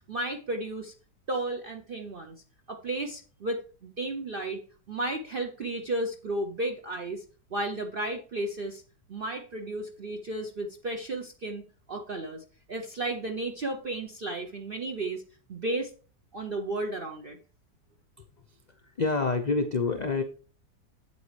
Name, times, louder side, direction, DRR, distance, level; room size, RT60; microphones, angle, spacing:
voice 1, 0.1-0.9 1.3-2.4 2.7-4.6 4.9-7.2 7.5-8.8 9.1-15.2 15.5-15.9 16.3-17.4, right 2 dB, 50° right, 4 dB, 0.6 m, -33 dB
voice 2, 19.0-20.2, left 4 dB, 60° left, 5 dB, 0.4 m, -26 dB
8.2 x 8.1 x 3.2 m, 0.38 s
omnidirectional pair, 1.8 m